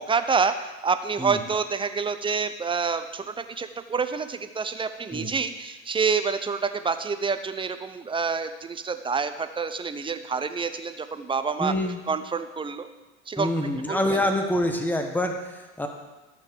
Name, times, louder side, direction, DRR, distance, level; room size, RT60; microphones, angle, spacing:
voice 1, 0.0-11.7 12.1-12.9 13.3-13.5 13.9-14.2, right 5 dB, 15° right, 9 dB, 0.7 m, -27 dB
voice 2, 11.6-12.0 13.4-15.9, left 1 dB, 5° left, 4 dB, 1.3 m, -26 dB
13.5 x 5.9 x 6.8 m, 1.1 s
hypercardioid pair, 85°, 37 cm